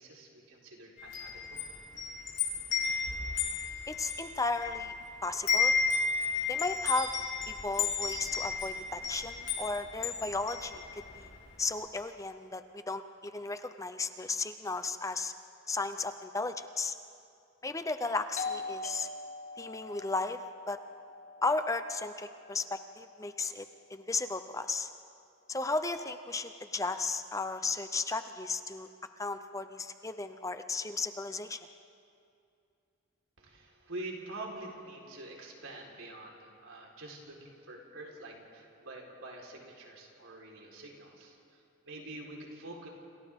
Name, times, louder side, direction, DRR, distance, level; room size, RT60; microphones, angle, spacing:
voice 1, 0.0-1.6 33.4-42.9, right 2 dB, 80° right, -1 dB, 4.1 m, -46 dB
Wind chime, 1.0-5.0 5.3-11.2, left 5 dB, 65° left, 6.7 m, -33 dB
voice 2, 3.9-4.9 5.2-5.8 6.5-7.1 7.5-11.3 11.6-15.3 15.7-16.9 17.6-19.1 19.6-20.4 20.7-20.8 21.4-24.9 25.5-28.9 29.2-31.6, left 3 dB, 15° left, 9 dB, 0.5 m, -35 dB
Doorbell, 18.4-23.8, left 3 dB, 40° left, 1.4 m, -43 dB
29.5 x 27.5 x 3.6 m, 2.6 s
head